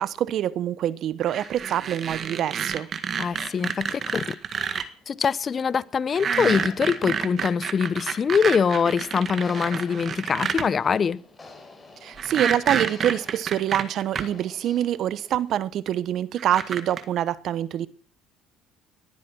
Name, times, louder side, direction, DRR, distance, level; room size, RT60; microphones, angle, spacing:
voice 1, 0.0-2.9 12.0-17.9, right 11 dB, 55° right, 1.0 m, -26 dB
sound 1, 1.3-4.8 6.1-10.7 12.2-14.2 15.3-15.4 16.4-17.0, right 7 dB, 40° right, 1.7 m, -29 dB
voice 2, 3.2-4.4 5.1-11.2, left 6 dB, 35° left, 0.8 m, -23 dB
sound 2, 3.3-15.6, left 3 dB, 15° left, 4.7 m, -50 dB
19.0 x 12.0 x 6.2 m
supercardioid pair, 100°, 0 cm